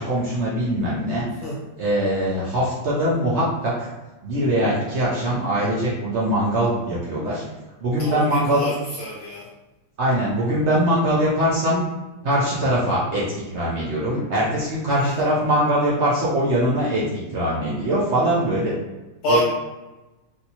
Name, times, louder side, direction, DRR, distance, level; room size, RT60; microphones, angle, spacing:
voice 1, 0.0-1.2 1.8-3.9 4.2-7.4 7.8-8.6 10.0-11.8 12.2-17.0 17.3-18.7 19.3-19.4, right 1 dB, 65° right, -6 dB, 0.7 m, -22 dB
voice 2, 8.0-9.5 14.9-15.2 19.2-19.4, equal, 65° left, -5 dB, 1.1 m, -27 dB
3.3 x 2.8 x 2.8 m, 1.1 s
omnidirectional pair, 1.9 m